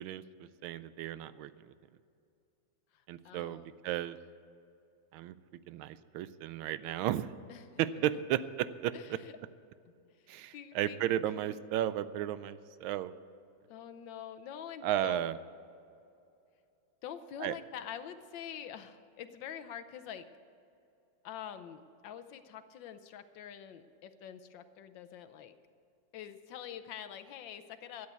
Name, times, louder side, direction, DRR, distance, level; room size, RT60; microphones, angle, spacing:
voice 1, 0.0-1.7 3.1-4.2 5.1-5.3 5.7-7.3 7.8-9.2 10.3-13.1 14.8-15.4 17.4-17.5, right 12 dB, 90° right, 15 dB, 1.4 m, -34 dB
voice 2, 2.9-3.7 7.5-7.8 8.9-9.4 10.5-11.0 13.7-15.3 17.0-20.3 21.2-25.5 26.1-28.1, left 9 dB, 70° left, 9 dB, 1.4 m, -45 dB
12.5 x 8.5 x 8.0 m, 2.6 s
omnidirectional pair, 2.2 m